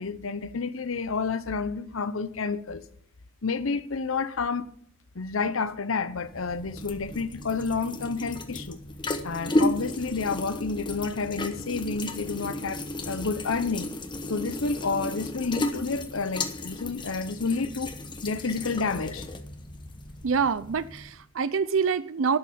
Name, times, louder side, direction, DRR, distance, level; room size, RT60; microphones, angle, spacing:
voice 1, 0.0-2.8 3.4-4.7 5.1-8.8 9.2-14.0 14.3-17.9 18.2-19.3, left 4 dB, 90° left, 0.8 m, -30 dB
sound 1, 6.1-21.2, left 1 dB, 25° left, 1.1 m, -34 dB
voice 2, 20.2-22.4, right 5 dB, 75° right, 0.5 m, -26 dB
11.5 x 6.4 x 8.6 m
head